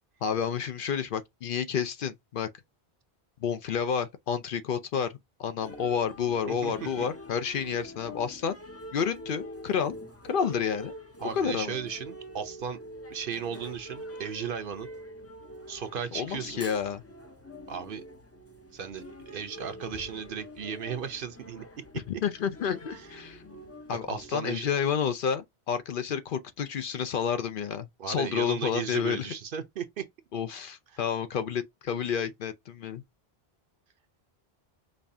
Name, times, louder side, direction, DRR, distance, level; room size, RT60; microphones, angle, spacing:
voice 1, 0.2-2.5 3.4-8.6 8.9-10.0 10.2-10.9 11.3-11.8 16.1-17.0 22.2-23.4 23.9-29.3 30.3-33.0, left 7 dB, 60° left, 0.7 m, -30 dB
sound 1, 5.6-24.4, equal, 20° left, 0.5 m, -45 dB
voice 2, 6.5-6.9 11.2-12.8 13.1-14.9 15.7-16.6 17.7-18.0 18.7-21.6 22.9-23.1 24.1-24.6 28.0-30.0, right 7 dB, 60° right, 0.8 m, -36 dB
5.3 x 2.4 x 2.7 m
omnidirectional pair, 1.0 m